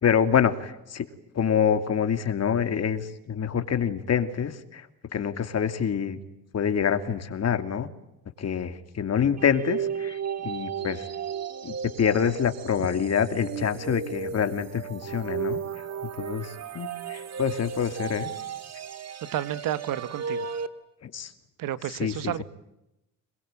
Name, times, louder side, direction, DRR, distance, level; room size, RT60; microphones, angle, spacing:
voice 1, 0.0-1.1 1.3-4.9 5.1-6.2 6.5-7.9 8.4-11.1 11.6-15.6 16.2-18.3 21.0-21.3 21.9-22.4, left 7 dB, 50° left, 9 dB, 2.8 m, -26 dB
sound 1, 9.4-20.7, right 7 dB, 50° right, 2.3 m, -34 dB
voice 2, 19.3-20.5 21.6-22.4, right 12 dB, 70° right, 15 dB, 1.6 m, -31 dB
26.5 x 22.0 x 9.0 m, 0.89 s
cardioid pair, 95°, 34 cm